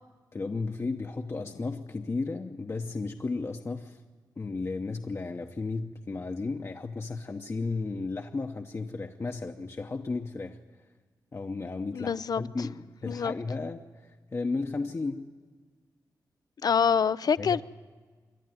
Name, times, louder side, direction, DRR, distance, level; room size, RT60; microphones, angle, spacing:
voice 1, 0.3-4.0 4.4-10.6 11.3-15.3 17.4-17.6, left 3 dB, 35° left, 0.9 m, -34 dB
voice 2, 11.9-12.4 13.1-13.3 16.6-17.6, left 6 dB, 60° left, 0.5 m, -25 dB
27.0 x 11.0 x 9.3 m
cardioid pair, 75°, 8 cm